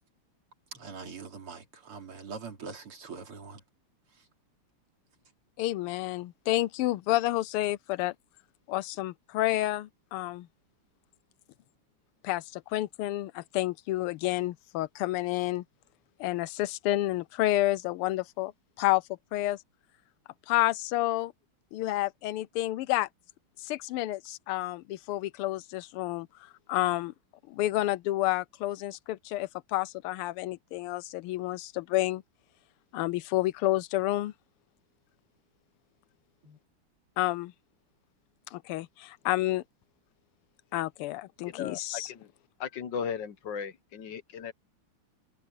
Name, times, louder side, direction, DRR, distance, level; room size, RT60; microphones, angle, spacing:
voice 1, 0.7-3.6 4.1-4.3 36.4-36.6, right 5 dB, 90° right, 3.9 m, -43 dB
voice 2, 5.6-8.1 8.7-10.5 12.2-15.6 16.2-18.5 18.8-19.0 19.3-19.6 20.5-21.3 21.7-23.1 23.6-26.3 26.7-27.1 27.5-32.2 32.9-34.3 37.2-37.5 38.5-39.6 40.7-42.1, left 16 dB, 90° left, 1.5 m, -29 dB
voice 3, 41.5-42.3 42.6-44.5, left 7 dB, 65° left, 1.5 m, -37 dB
omnidirectional pair, 2.4 m